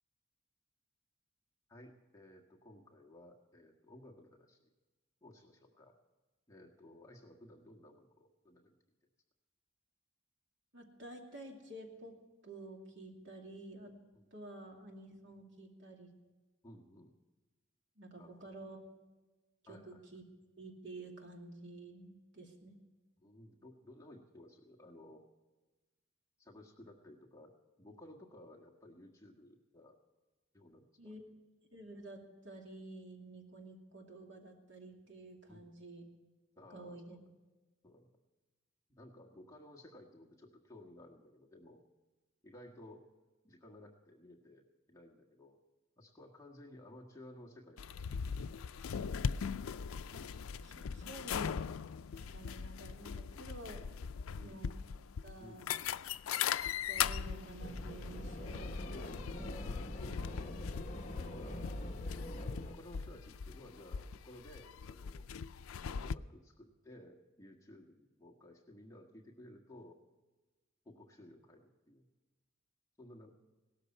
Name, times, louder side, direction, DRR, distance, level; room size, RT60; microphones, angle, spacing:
voice 1, 1.7-4.6 5.2-5.9 6.5-8.8 14.1-14.3 16.6-17.1 18.2-18.4 19.7-20.0 23.2-25.3 26.4-27.5 27.8-30.0 30.5-31.2 35.5-35.7 36.6-37.2 37.8-38.1 38.9-41.8 42.4-43.0 43.4-45.6 46.0-47.9 54.3-54.6 55.4-55.7 59.5-60.5 61.1-61.6 62.6-65.2 66.0-70.0 70.8-72.1 73.0-73.4, left 1 dB, 15° left, 0 dB, 1.6 m, -56 dB
voice 2, 10.7-12.2 12.4-13.9 14.3-16.1 18.0-18.8 19.7-20.2 20.6-22.8 31.0-31.3 31.7-36.0 36.7-37.2 50.1-50.4 50.6-51.5 52.1-53.9 54.4-54.8 55.2-55.7 56.9-59.7 61.6-61.7, right 2 dB, 60° right, 1 dB, 2.6 m, -51 dB
sound 1, 47.8-66.1, left 7 dB, 90° left, 0.4 m, -40 dB
sound 2, 57.6-62.7, left 1 dB, 35° left, 1.2 m, -43 dB
17.5 x 13.5 x 4.4 m, 1.2 s
head